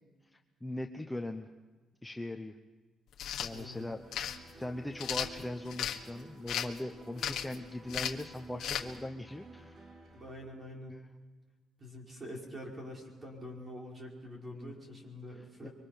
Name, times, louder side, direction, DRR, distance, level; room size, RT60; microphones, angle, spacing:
voice 1, 0.6-1.5 2.0-2.6 3.4-4.0 4.5-9.8 10.9-11.0 14.6-14.7 15.3-15.7, left 1 dB, 5° left, 4 dB, 0.8 m, -40 dB
sound 1, 3.1-3.5 4.1-4.4 5.0-6.0 6.5-6.8 7.2-7.6 7.9-8.2 8.6-8.8, left 10 dB, 75° left, 1.4 m, -35 dB
voice 2, 3.4-3.9 10.1-11.0 11.8-15.7, left 1 dB, 25° right, -1 dB, 5.1 m, -45 dB
sound 2, 3.5-10.3, right 3 dB, 45° right, 2.7 m, -53 dB
25.5 x 23.5 x 5.8 m, 1.3 s
cardioid pair, 155°, 0 cm